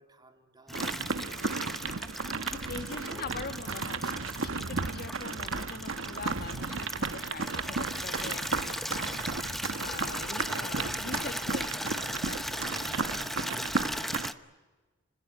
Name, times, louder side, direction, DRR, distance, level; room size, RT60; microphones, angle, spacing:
voice 1, 0.0-1.7 2.9-4.4, right 1 dB, 20° right, 4 dB, 3.1 m, -55 dB
Water tap faucet / Liquid, 0.7-14.3, equal, ahead, 0.9 m, -37 dB
sound 1, 0.7-14.3, right 4 dB, 85° right, 1.2 m, -34 dB
voice 2, 2.4-4.0 4.4-13.5, left 4 dB, 50° left, 9 dB, 2.0 m, -43 dB
30.0 x 21.0 x 9.2 m, 1.3 s
head